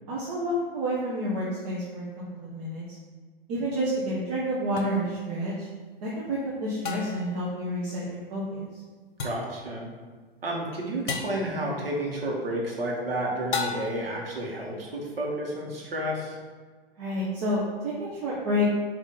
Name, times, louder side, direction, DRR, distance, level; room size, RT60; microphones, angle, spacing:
voice 1, 0.1-2.0 2.3-2.8 3.5-5.7 6.0-8.7 17.0-18.7, equal, 40° right, -7 dB, 1.3 m, -29 dB
sound 1, 4.8-4.9 6.8-7.3 9.2-9.6 11.1-11.5 13.5-14.1, left 5 dB, 55° left, 0.9 m, -32 dB
voice 2, 9.2-9.9 10.4-16.4, right 1 dB, 70° right, -2 dB, 1.7 m, -31 dB
7.2 x 3.2 x 4.1 m, 1.5 s
figure-of-eight pair, 110°, 30 cm